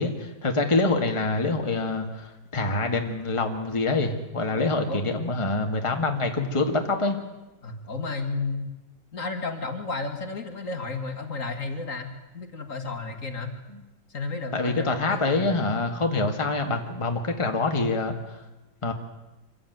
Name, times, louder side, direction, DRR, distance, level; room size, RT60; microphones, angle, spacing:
voice 1, 0.0-7.2 14.5-18.4 18.8-18.9, left 3 dB, 20° left, 4 dB, 1.8 m, -26 dB
voice 2, 7.6-8.7 9.1-13.6 14.1-15.5, left 3 dB, 50° left, 6 dB, 2.3 m, -32 dB
25.0 x 16.0 x 9.3 m, 1.1 s
omnidirectional pair, 1.8 m